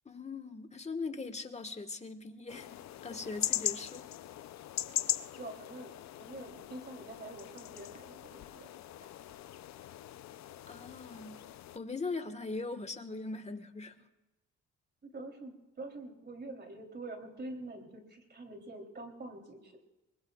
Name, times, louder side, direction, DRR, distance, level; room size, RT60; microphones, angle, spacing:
voice 1, 0.0-4.0 10.7-11.4 11.7-14.0, left 3 dB, 20° left, 9 dB, 1.5 m, -40 dB
sound 1, 2.5-11.8, left 13 dB, 65° left, 0.6 m, -40 dB
voice 2, 5.4-5.9 6.2-8.7 15.0-19.8, right 2 dB, 35° right, 4 dB, 3.2 m, -46 dB
24.5 x 20.5 x 2.4 m, 0.99 s
cardioid pair, 90°, 30 cm